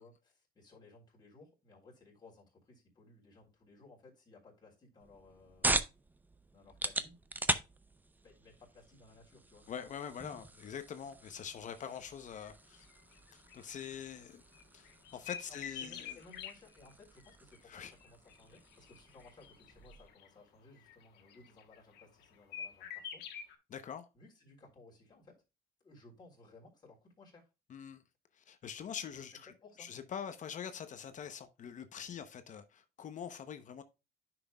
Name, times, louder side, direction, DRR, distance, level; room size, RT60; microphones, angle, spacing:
voice 1, 0.0-5.8 6.5-7.2 8.2-9.7 15.5-23.3 24.1-25.4 25.8-27.5 29.1-29.9, left 3 dB, 25° left, 3.5 m, -59 dB
sound 1, 5.0-20.1, right 2 dB, 10° right, 0.6 m, -41 dB
voice 2, 9.7-12.9 13.3-14.4 14.7-16.2 17.7-17.9 23.7-24.0 27.7-28.0 28.3-29.5 29.8-33.8, left 8 dB, 45° left, 0.8 m, -44 dB
sound 2, 11.8-12.0 12.3-12.5 12.8-13.9 14.5-16.5 17.2-20.3 20.8-22.2 22.5-23.5, left 8 dB, 80° left, 1.4 m, -47 dB
10.0 x 6.0 x 2.3 m
cardioid pair, 110°, 17 cm